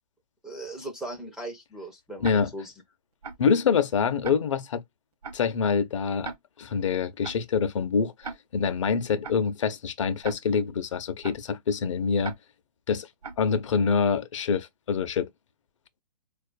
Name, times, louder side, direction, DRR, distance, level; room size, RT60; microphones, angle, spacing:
voice 1, 0.4-2.7, right 1 dB, ahead, 0.4 m, -38 dB
Tick-tock, 2.2-2.4 3.2-3.4 4.2-4.4 5.2-5.4 6.2-6.4 7.2-7.4 8.2-8.4 9.2-9.4 10.2-10.4 11.2-11.4 12.2-12.4 13.2-13.4, right 4 dB, 70° right, 0.8 m, -36 dB
voice 2, 3.4-4.8 5.3-6.3 6.6-12.3 12.9-13.1 13.4-15.3, left 6 dB, 50° left, 0.6 m, -25 dB
4.3 x 2.4 x 2.3 m
figure-of-eight pair, 120°, 20 cm